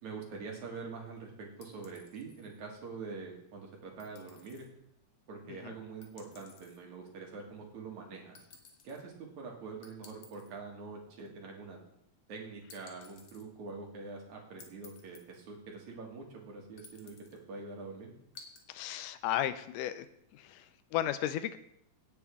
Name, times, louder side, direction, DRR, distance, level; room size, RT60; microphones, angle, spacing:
voice 1, 0.0-4.7 5.3-8.4 8.8-11.8 12.3-18.1, right 4 dB, 65° right, 0 dB, 3.3 m, -45 dB
sound 1, 1.6-2.6 4.0-4.7 6.0-6.8 8.3-9.0 9.8-10.6 12.7-13.4 14.6-15.4 16.8-17.4 18.3-18.6, left 5 dB, 60° left, 2.5 m, -56 dB
voice 2, 18.7-20.1 20.3-21.6, left 12 dB, 85° left, 12 dB, 2.2 m, -34 dB
17.0 x 6.8 x 3.6 m, 0.78 s
omnidirectional pair, 3.7 m